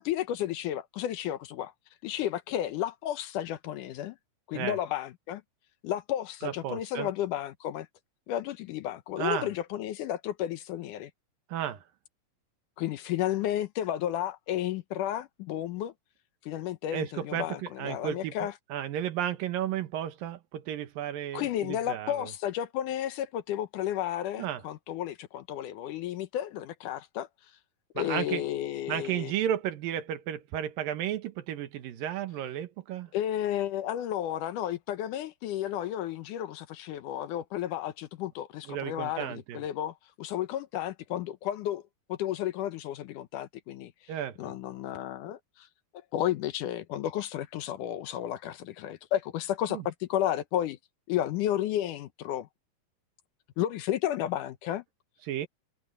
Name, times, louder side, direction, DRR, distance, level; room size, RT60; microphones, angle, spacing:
voice 1, 0.0-1.7 2.0-4.2 4.5-5.4 5.8-7.9 8.3-11.1 12.8-15.9 16.4-18.5 21.3-27.3 28.0-29.3 33.1-41.8 42.1-43.9 44.4-45.7 46.1-50.8 51.1-52.5 53.6-54.8, left 12 dB, 70° left, 2.3 m, -32 dB
voice 2, 6.4-7.1 9.2-9.5 11.5-11.8 16.9-22.3 24.4-24.6 28.0-28.4 28.9-33.1 38.7-39.6 44.1-44.4 49.7-49.8 55.3-55.5, right 10 dB, 85° right, 3.0 m, -33 dB
omnidirectional pair, 4.0 m